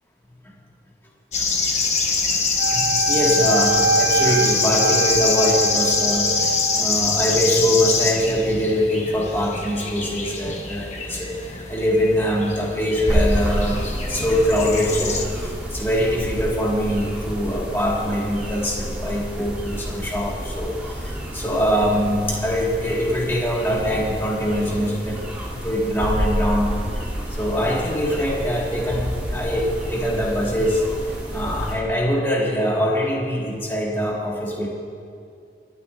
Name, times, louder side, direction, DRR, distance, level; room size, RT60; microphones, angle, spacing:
sound 1, 1.3-15.2, left 4 dB, 40° left, 1.2 m, -24 dB
voice 1, 2.3-13.8 14.1-25.2 25.5-26.7 27.4-30.8 31.3-34.7, equal, 15° left, -4 dB, 1.8 m, -23 dB
Wind instrument woodwind instrument, 2.6-6.8, right 3 dB, 60° right, 1.4 m, -24 dB
sound 2, 13.1-31.7, equal, 10° right, 2.9 m, -29 dB
24.0 x 12.5 x 2.6 m, 2.4 s
head